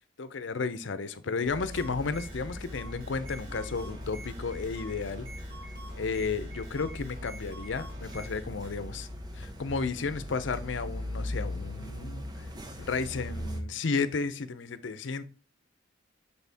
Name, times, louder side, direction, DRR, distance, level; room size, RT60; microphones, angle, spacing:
voice 1, 0.2-5.3 5.9-9.1 9.3-12.5 12.8-15.2, left 4 dB, 75° left, 0.6 m, -33 dB
sound 1, 1.4-13.6, left 1 dB, 20° right, 0.8 m, -40 dB
sound 2, 1.7-9.1, right 1 dB, 50° right, 2.3 m, -49 dB
6.9 x 4.1 x 3.5 m
head